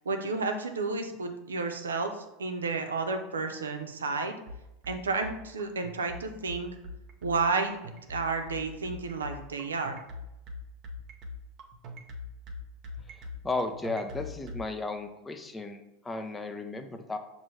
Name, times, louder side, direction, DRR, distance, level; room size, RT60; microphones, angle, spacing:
voice 1, 0.1-4.3 4.9-6.8 7.2-10.0, right 4 dB, 90° right, 5 dB, 0.5 m, -31 dB
sound 1, 4.5-14.6, left 2 dB, 50° right, 0.8 m, -41 dB
voice 2, 13.1-17.2, left 3 dB, 15° left, 6 dB, 0.5 m, -35 dB
6.1 x 2.6 x 3.1 m, 0.92 s
hypercardioid pair, 90°, 0 cm